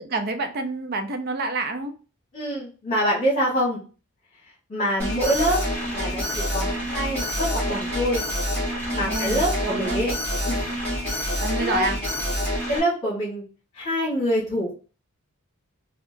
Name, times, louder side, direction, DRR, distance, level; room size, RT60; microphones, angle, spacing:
voice 1, 0.0-1.9 9.0-10.0 11.4-12.0, right 3 dB, 45° right, 7 dB, 0.5 m, -28 dB
voice 2, 2.3-3.8 4.7-5.6 5.9-8.2 8.9-10.1 10.4-10.7 11.1-11.9 12.7-13.4 13.7-14.7, equal, 35° left, -7 dB, 1.4 m, -25 dB
Alarm, 5.0-12.8, equal, 5° left, 1.4 m, -27 dB
3.6 x 2.4 x 2.6 m, 0.36 s
head